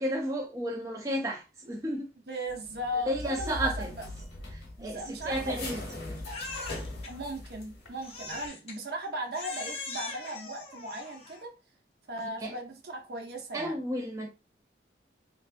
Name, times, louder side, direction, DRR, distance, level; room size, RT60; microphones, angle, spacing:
voice 1, 0.0-2.1 2.9-3.9 4.5-6.1 12.2-12.5 13.5-14.3, equal, 20° right, 0.4 m, -33 dB
voice 2, 2.3-3.5 4.8-5.8 7.1-11.5 12.1-13.8, right 1 dB, 65° right, 0.8 m, -37 dB
sound 1, 2.5-7.9 8.2-8.5, left 2 dB, 80° left, 1.2 m, -40 dB
Crying sobbing, 6.3-7.1 8.0-8.8 9.3-11.5, left 3 dB, 35° left, 0.7 m, -41 dB
3.3 x 2.5 x 2.5 m
head